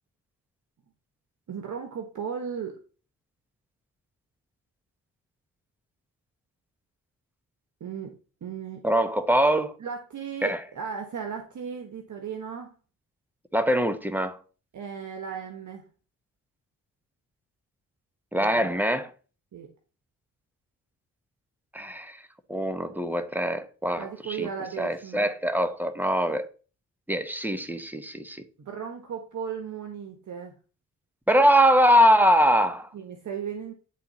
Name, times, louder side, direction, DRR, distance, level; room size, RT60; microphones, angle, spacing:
voice 1, 1.5-2.8 7.8-8.8 9.8-12.7 14.7-15.8 18.4-18.7 19.5-19.7 24.0-25.3 28.6-30.5 32.9-33.7, right 7 dB, 60° right, 1.3 m, -36 dB
voice 2, 8.8-9.7 10.4-10.6 13.5-14.4 18.3-19.1 21.7-22.2 22.5-24.5 24.8-26.5 27.1-28.4 31.3-32.9, equal, 5° right, 0.9 m, -23 dB
10.0 x 3.6 x 4.1 m
cardioid pair, 90°, 34 cm